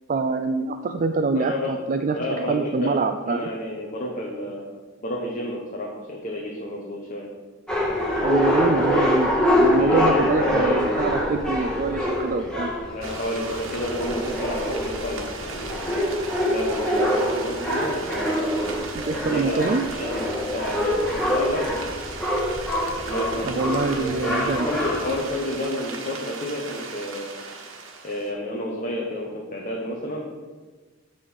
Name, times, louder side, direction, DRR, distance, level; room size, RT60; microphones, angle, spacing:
voice 1, 0.1-2.2 2.5-3.5 8.2-12.7 18.9-19.9 23.4-24.7, right 4 dB, 40° right, 7 dB, 0.4 m, -25 dB
voice 2, 1.3-1.8 2.1-3.0 3.3-4.6 5.0-7.3 9.7-11.0 12.9-16.0 16.5-18.6 19.1-19.7 20.0-21.7 23.1-27.3 28.0-30.3, left 1 dB, 40° left, -2 dB, 1.2 m, -30 dB
sound 1, 7.7-25.1, left 1 dB, 5° left, 1.7 m, -25 dB
sound 2, 13.0-28.3, right 4 dB, 90° right, 1.3 m, -38 dB
10.5 x 4.1 x 6.4 m, 1.3 s
head